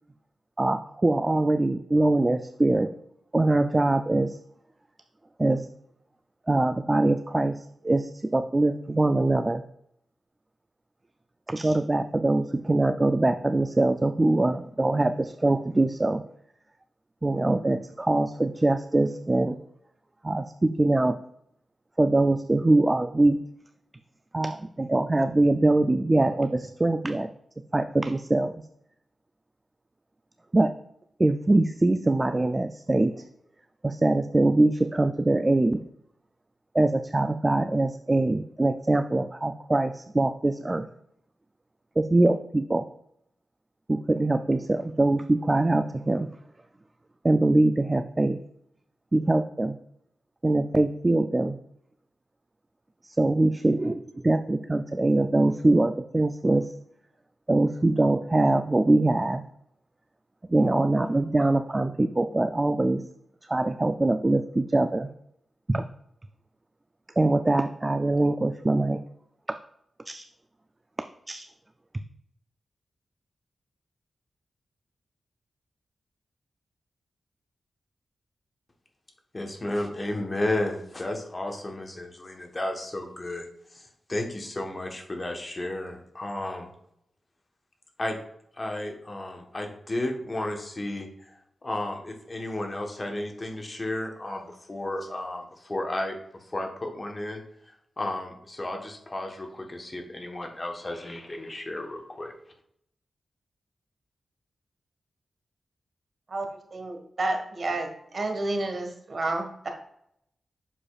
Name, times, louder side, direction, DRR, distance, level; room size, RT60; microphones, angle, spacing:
voice 1, 0.6-2.9 3.3-4.4 5.4-5.7 6.5-9.6 11.5-16.2 17.2-19.6 20.2-21.2 22.0-23.4 24.3-27.3 27.7-28.5 30.5-30.7 31.2-33.2 33.8-35.8 36.7-40.9 42.0-42.9 43.9-46.3 47.2-48.4 49.1-49.8 50.4-51.6 53.0-56.7 57.5-59.4 60.5-63.0 63.5-65.1 65.7-65.8 67.2-69.0 70.1-70.2 71.3-71.4, right 2 dB, 20° right, 8 dB, 0.3 m, -23 dB
voice 2, 79.3-83.5 84.1-86.7 88.0-88.2 88.6-91.1 91.6-96.2 96.5-97.4 98.0-102.3, left 1 dB, 30° left, 3 dB, 1.1 m, -33 dB
voice 3, 106.7-107.9 108.1-109.7, right 2 dB, 50° right, 3 dB, 1.5 m, -30 dB
7.5 x 6.5 x 2.4 m, 0.74 s
wide cardioid pair, 120°, 0 cm